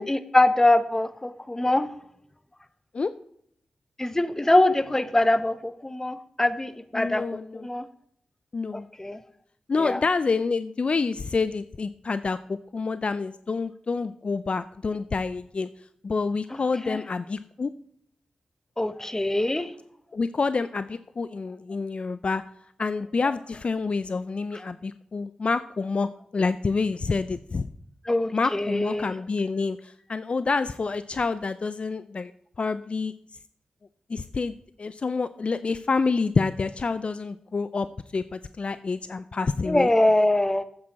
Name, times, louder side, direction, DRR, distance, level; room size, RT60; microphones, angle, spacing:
voice 1, 0.0-1.9 4.0-7.9 8.7-9.2 9.8-10.0 16.5-17.0 18.8-19.7 28.0-29.1 39.6-40.6, left 1 dB, 20° left, 12 dB, 0.9 m, -23 dB
voice 2, 6.9-7.7 8.5-8.9 9.7-15.7 16.0-17.7 20.1-22.4 22.8-27.7 28.3-32.3 32.6-33.1 34.1-39.9, left 4 dB, 50° left, 13 dB, 0.4 m, -28 dB
9.5 x 8.4 x 4.2 m, 0.68 s
cardioid pair, 45°, 2 cm